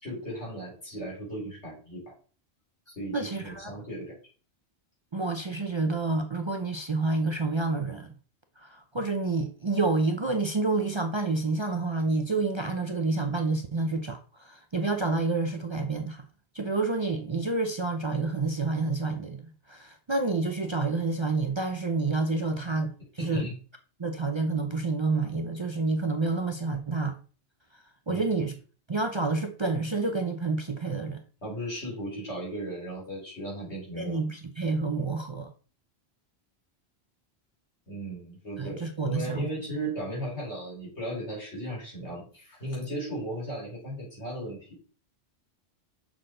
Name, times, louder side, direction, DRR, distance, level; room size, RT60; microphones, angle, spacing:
voice 1, 0.0-2.1 2.9-4.2 23.2-23.5 28.1-28.2 31.4-34.2 37.9-44.8, right 1 dB, 85° left, 4.6 m, -36 dB
voice 2, 3.1-3.7 5.1-8.1 8.6-16.2 16.5-23.4 24.0-27.2 27.7-28.6 28.9-31.2 34.0-35.5 38.6-39.5, right 3 dB, 35° right, 0.6 m, -29 dB
6.6 x 6.0 x 3.8 m
omnidirectional pair, 1.1 m